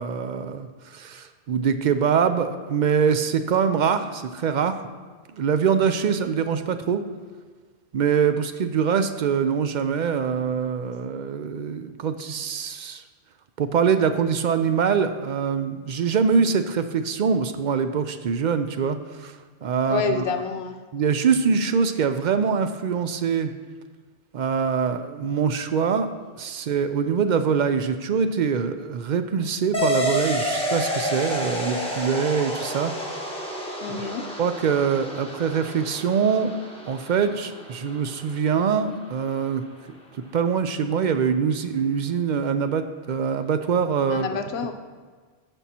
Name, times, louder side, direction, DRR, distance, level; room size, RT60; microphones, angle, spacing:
voice 1, 0.0-4.9 5.3-7.0 7.9-13.0 13.6-19.3 19.6-20.2 20.9-23.5 24.3-32.9 34.0-34.1 34.4-36.5 36.9-39.6 40.3-44.3, right 6 dB, 55° right, 9 dB, 0.5 m, -24 dB
voice 2, 19.9-20.7 33.8-34.3 44.1-44.7, left 5 dB, 80° left, 6 dB, 0.8 m, -28 dB
sound 1, 29.7-38.8, left 1 dB, 5° left, 1.2 m, -30 dB
14.5 x 5.4 x 2.8 m, 1.5 s
omnidirectional pair, 1.1 m